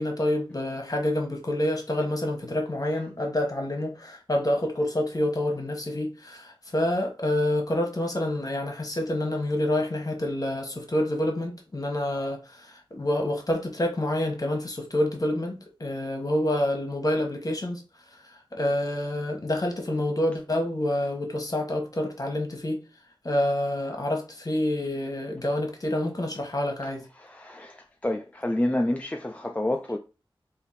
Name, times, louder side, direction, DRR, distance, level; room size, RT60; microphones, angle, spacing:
voice 1, 0.0-17.8 18.5-22.8 23.2-27.0, left 1 dB, 40° left, 1.2 m, -27 dB
voice 2, 27.2-30.0, left 1 dB, 15° left, 0.4 m, -28 dB
3.4 x 2.7 x 4.1 m
wide cardioid pair, 45°, 9 cm